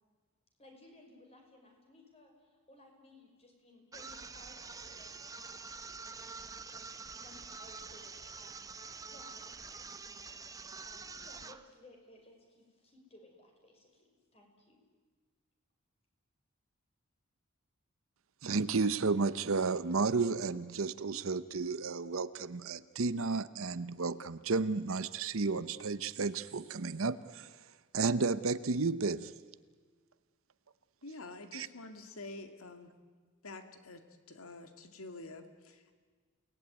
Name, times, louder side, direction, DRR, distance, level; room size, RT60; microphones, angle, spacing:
voice 1, 0.6-5.7 6.0-8.8 9.1-10.4 10.8-14.1 14.3-14.8, left 1 dB, 30° left, 2 dB, 5.7 m, -59 dB
sound 1, 3.9-11.7, right 4 dB, 15° right, 0.8 m, -47 dB
voice 2, 18.4-27.5 27.9-29.3 31.5-31.7, right 4 dB, 70° right, 15 dB, 0.8 m, -32 dB
voice 3, 31.0-32.9 33.4-35.9, left 2 dB, 80° left, 7 dB, 2.1 m, -48 dB
29.0 x 19.0 x 9.4 m, 1.5 s
head